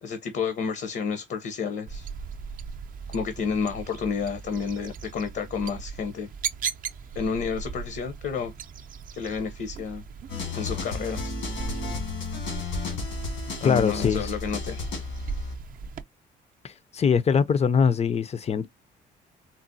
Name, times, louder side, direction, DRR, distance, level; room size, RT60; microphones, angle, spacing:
voice 1, 0.0-2.1 3.1-6.3 7.1-8.5 9.1-10.0 10.6-11.3 13.6-14.9, left 6 dB, 60° left, 0.7 m, -30 dB
sound 1, 1.9-16.0, right 6 dB, 45° right, 0.4 m, -38 dB
sound 2, 10.3-15.6, left 3 dB, 85° left, 1.5 m, -33 dB
voice 2, 13.6-14.3 16.6-18.7, left 6 dB, 35° left, 0.4 m, -23 dB
3.9 x 2.0 x 2.6 m
cardioid pair, 90°, 20 cm